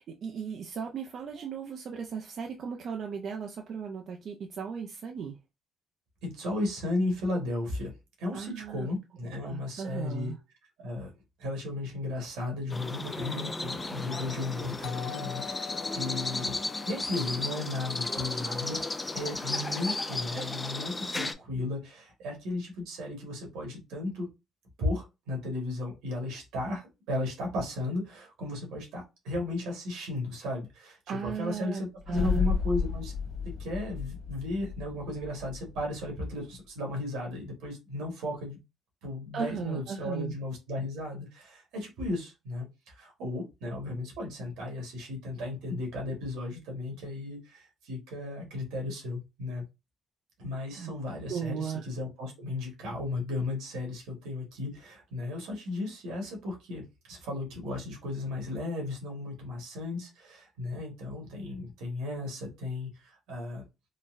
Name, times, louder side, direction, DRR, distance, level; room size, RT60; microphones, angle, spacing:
voice 1, 0.0-5.4 8.3-8.9 9.4-10.4 31.1-32.4 39.3-40.3 50.8-50.9 51.3-51.8, right 7 dB, 60° right, 3 dB, 0.4 m, -36 dB
voice 2, 6.2-10.3 10.8-11.1 11.4-16.6 16.9-18.8 19.1-24.3 24.8-33.1 33.6-38.6 39.0-49.6 50.4-63.6, left 2 dB, 90° right, 1 dB, 1.5 m, -35 dB
sound 1, 12.7-21.3, left 2 dB, 20° left, 0.4 m, -34 dB
Doorbell, 14.8-19.4, left 10 dB, 70° left, 0.6 m, -45 dB
sound 2, 32.0-36.3, left 5 dB, 35° left, 1.0 m, -33 dB
3.9 x 2.1 x 2.5 m, 0.25 s
cardioid pair, 90°, 0 cm